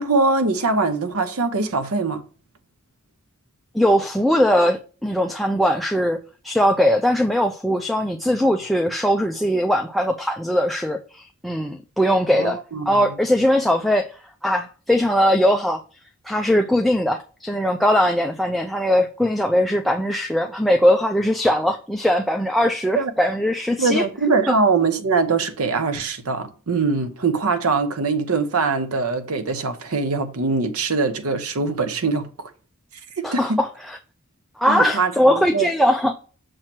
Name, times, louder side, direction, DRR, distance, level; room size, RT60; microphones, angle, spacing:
voice 1, 0.0-2.2 12.3-13.1 22.9-23.1 23.8-32.3 33.2-33.6 34.7-35.7, right 4 dB, 80° right, 0.8 m, -22 dB
voice 2, 3.7-12.6 12.9-14.1 14.4-15.8 16.3-24.0 24.5-24.6 33.2-34.0 34.6-36.1, equal, ahead, 0.3 m, -20 dB
6.5 x 3.0 x 5.8 m
head